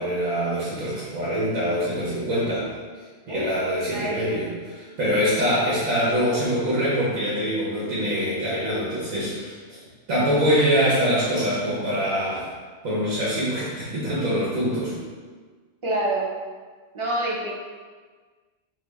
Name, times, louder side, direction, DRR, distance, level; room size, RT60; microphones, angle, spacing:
voice 1, 0.0-2.7 3.3-9.8 10.1-12.4 12.8-14.9, equal, 90° right, -8 dB, 1.4 m, -24 dB
voice 2, 3.9-4.4 15.8-16.3 16.9-17.5, right 1 dB, 35° right, -5 dB, 0.5 m, -27 dB
3.2 x 3.1 x 3.4 m, 1.5 s
omnidirectional pair, 1.4 m